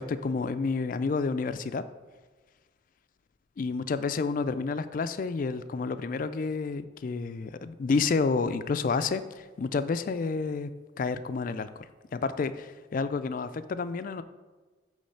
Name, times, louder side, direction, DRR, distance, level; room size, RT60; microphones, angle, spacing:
voice 1, 0.0-1.8 3.6-10.7 11.0-11.9 12.1-14.2, left 4 dB, 45° left, 12 dB, 0.3 m, -30 dB
8.4 x 3.2 x 5.6 m, 1.3 s
head